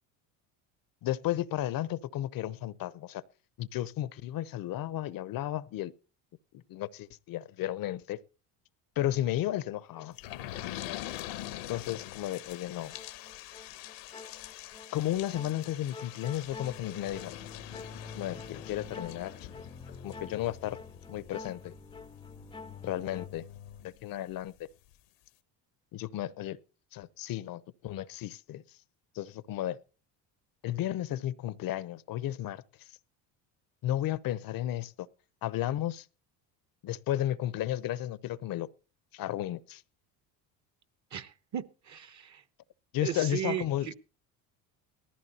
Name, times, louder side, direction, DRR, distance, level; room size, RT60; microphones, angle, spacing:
voice 1, 1.0-3.2 3.6-5.9 6.5-8.2 9.0-10.2 11.7-12.9 14.9-17.3 18.2-19.3 20.0-20.8 21.1-21.7 22.8-23.5 23.8-24.5 25.9-26.6 26.9-28.6 29.1-29.8 30.6-32.6 33.8-34.9 35.4-36.0 36.8-38.7 39.1-39.8 42.9-43.9, left 13 dB, 50° left, 0.8 m, -33 dB
sound 1, 9.9-11.3 11.7-23.3, left 4 dB, 10° left, 0.6 m, -48 dB
sound 2, 10.2-24.5 24.9-25.0 25.3-25.4, left 14 dB, 70° left, 1.0 m, -45 dB
voice 2, 41.1-42.4 43.0-43.9, right 9 dB, 40° right, 1.0 m, -36 dB
19.0 x 14.5 x 2.8 m
supercardioid pair, 90°, 44 cm